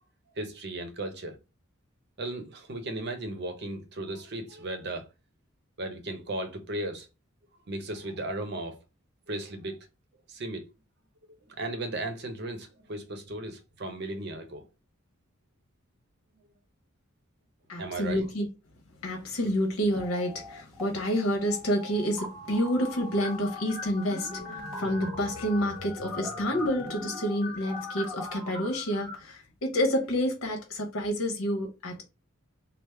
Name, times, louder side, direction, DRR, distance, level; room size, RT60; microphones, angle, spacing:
voice 1, 0.4-1.4 2.2-5.1 5.8-7.1 7.7-8.8 9.3-9.8 10.3-10.6 11.5-14.6 17.8-18.3, right 1 dB, 55° right, 0.7 m, -36 dB
voice 2, 17.7-18.5 19.0-32.0, equal, 80° left, 0.9 m, -29 dB
sound 1, 19.9-20.9 21.1-29.1, left 2 dB, 5° left, 1.4 m, -40 dB
3.4 x 2.0 x 3.2 m
head